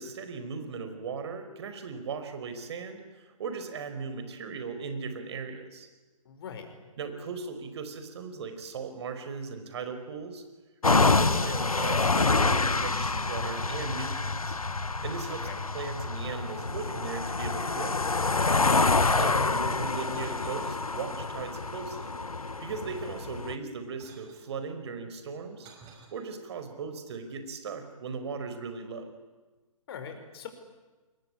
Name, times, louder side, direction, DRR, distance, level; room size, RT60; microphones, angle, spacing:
voice 1, 0.0-5.9 7.0-10.4 10.9-14.6 15.0-15.5 15.7-18.0 19.2-22.1 22.6-25.7 26.1-29.1, right 5 dB, 50° right, 8 dB, 5.0 m, -38 dB
voice 2, 6.3-6.7 15.3-15.7 18.9-19.2 29.9-30.5, left 7 dB, 45° left, 6 dB, 5.5 m, -42 dB
sound 1, 10.8-23.5, left 3 dB, 90° left, 1.3 m, -27 dB
sound 2, 20.0-20.6 21.2-22.7 23.5-24.5 25.2-26.1, right 5 dB, 20° right, 5.5 m, -57 dB
26.0 x 22.5 x 10.0 m, 1.2 s
figure-of-eight pair, 135°, 18 cm